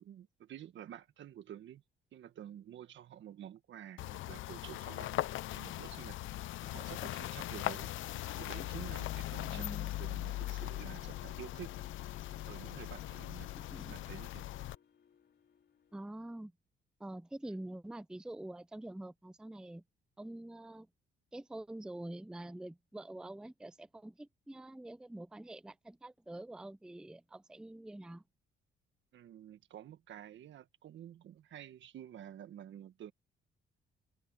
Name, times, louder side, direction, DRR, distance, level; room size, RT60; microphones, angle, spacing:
voice 1, 0.0-1.8 2.1-5.1 5.5-6.2 6.6-7.9 8.4-11.7 12.5-13.5 13.8-14.4 29.1-33.1, right 10 dB, 70° right, 1.7 m, -50 dB
sound 1, 4.0-14.8, left 15 dB, 80° left, 0.7 m, -40 dB
sound 2, 5.1-16.0, left 7 dB, 55° left, 3.8 m, -63 dB
voice 2, 9.4-9.9 13.7-14.0 15.9-16.5 17.0-19.8 20.2-20.9 21.3-28.2, right 1 dB, 5° right, 0.5 m, -46 dB
cardioid pair, 90°, 20 cm